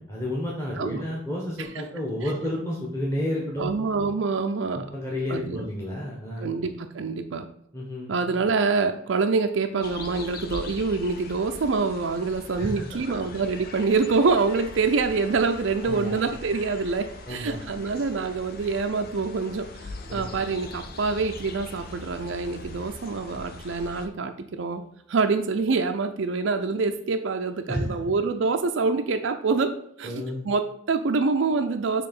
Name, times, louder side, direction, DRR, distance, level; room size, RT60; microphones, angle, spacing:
voice 1, 0.0-3.7 4.7-6.5 7.7-8.1 12.6-12.8 15.8-16.1 17.3-17.6 20.1-20.2 27.7-27.8 30.0-30.4, left 1 dB, 15° left, -4 dB, 1.2 m, -31 dB
voice 2, 3.6-4.9 5.3-5.7 6.4-7.5 8.1-24.8 25.1-32.1, right 4 dB, 70° right, 6 dB, 0.5 m, -26 dB
sound 1, 9.8-24.1, left 3 dB, 50° left, 0.6 m, -42 dB
sound 2, 20.0-25.9, left 1 dB, 30° left, 1.5 m, -48 dB
6.7 x 3.0 x 5.3 m, 0.70 s
head